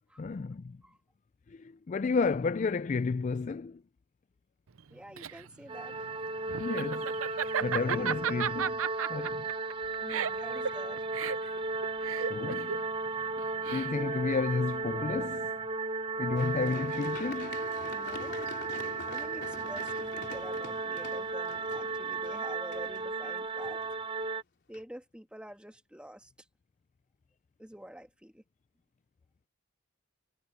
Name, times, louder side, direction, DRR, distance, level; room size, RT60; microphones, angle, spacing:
voice 1, 0.2-0.8 1.5-3.8 6.6-7.1 7.6-8.8 9.1-9.5 12.2-12.8 13.7-15.5 16.2-17.6, left 4 dB, 35° left, 0.3 m, -32 dB
Laughter, 4.8-14.2, right 8 dB, 80° right, 0.6 m, -34 dB
voice 2, 4.9-6.1 10.0-11.1 17.9-23.8 24.7-26.5 27.6-28.4, equal, 5° right, 2.4 m, -48 dB
sound 1, 5.7-24.4, right 3 dB, 25° right, 0.8 m, -35 dB
Run, 16.4-24.3 24.7-24.8, left 3 dB, 55° left, 4.3 m, -46 dB
head